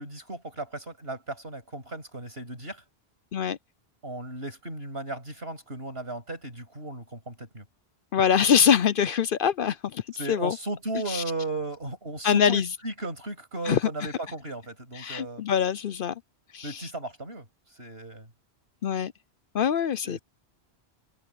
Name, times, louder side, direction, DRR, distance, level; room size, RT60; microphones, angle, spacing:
voice 1, 0.0-2.8 4.0-7.7 10.1-15.4 16.6-17.5 17.8-18.3 20.0-20.2, right 2 dB, 70° right, 7.7 m, -36 dB
voice 2, 8.1-10.0 10.3-10.6 11.1-11.2 12.2-12.7 13.7-13.8 14.9-16.1 16.5-16.9 18.8-19.1 19.5-20.2, left 8 dB, 60° left, 0.7 m, -24 dB
omnidirectional pair, 1.1 m